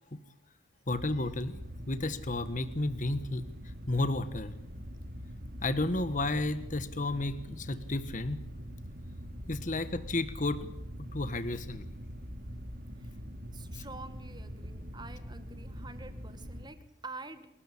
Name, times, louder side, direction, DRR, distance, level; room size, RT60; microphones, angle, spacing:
voice 1, 0.9-4.5 5.6-8.4 9.5-10.7 11.1-11.9 13.7-13.8, left 2 dB, 40° left, 12 dB, 1.4 m, -32 dB
sound 1, 0.9-16.7, equal, 45° right, 2.9 m, -43 dB
voice 2, 13.5-17.5, right 3 dB, 20° right, 10 dB, 2.0 m, -47 dB
28.0 x 13.5 x 8.4 m, 0.81 s
head